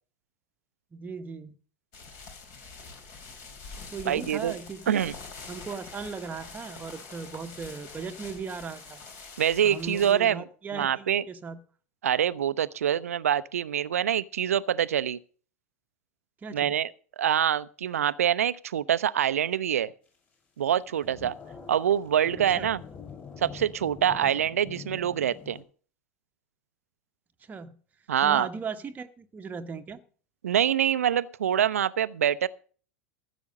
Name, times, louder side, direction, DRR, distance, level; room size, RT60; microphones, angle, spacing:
voice 1, 0.9-1.6 3.9-5.1 5.5-9.0 9.6-11.6 16.4-16.8 22.4-22.7 27.5-27.7 28.2-30.0, right 5 dB, 20° right, 1.0 m, -38 dB
sound 1, 1.9-10.1, left 4 dB, 45° left, 3.5 m, -45 dB
voice 2, 4.1-4.5 4.9-5.1 9.4-10.5 10.7-11.2 12.0-15.2 16.5-16.9 17.2-19.9 20.6-21.3 21.7-22.8 23.4-25.6 28.1-28.5 30.4-32.5, right 9 dB, 70° right, 0.6 m, -25 dB
sound 2, 20.7-25.6, left 6 dB, 25° left, 6.2 m, -45 dB
14.0 x 7.1 x 6.4 m
figure-of-eight pair, 85°, 8 cm